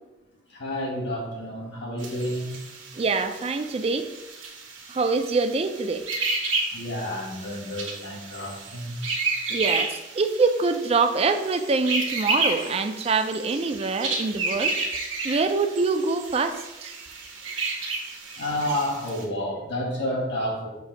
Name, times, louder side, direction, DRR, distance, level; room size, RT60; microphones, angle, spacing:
voice 1, 0.5-2.6 6.7-9.0 18.4-20.7, left 1 dB, 60° left, -3 dB, 1.8 m, -30 dB
sound 1, 2.0-19.2, right 3 dB, 75° right, 1.2 m, -32 dB
voice 2, 2.9-4.1 4.9-6.1 9.5-14.8 15.2-16.9, right 4 dB, 30° right, 8 dB, 0.4 m, -25 dB
6.9 x 2.7 x 5.1 m, 1.0 s
head